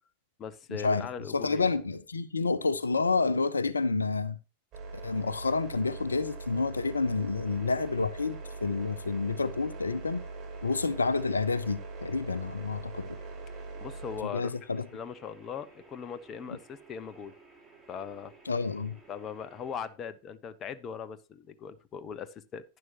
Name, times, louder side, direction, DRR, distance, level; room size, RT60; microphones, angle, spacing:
voice 1, 0.4-1.7 13.8-14.5 14.9-17.3 17.9-18.3 19.1-22.6, left 7 dB, 30° left, 0.9 m, -39 dB
voice 2, 1.3-4.4 5.0-10.2 10.6-13.1 14.3-14.9 18.5-19.0, left 4 dB, 75° left, 0.7 m, -29 dB
sound 1, 4.7-14.2, right 3 dB, 35° right, 3.3 m, -42 dB
sound 2, 7.4-19.9, right 4 dB, 15° right, 3.4 m, -57 dB
11.0 x 10.5 x 2.9 m
figure-of-eight pair, 90°, 0 cm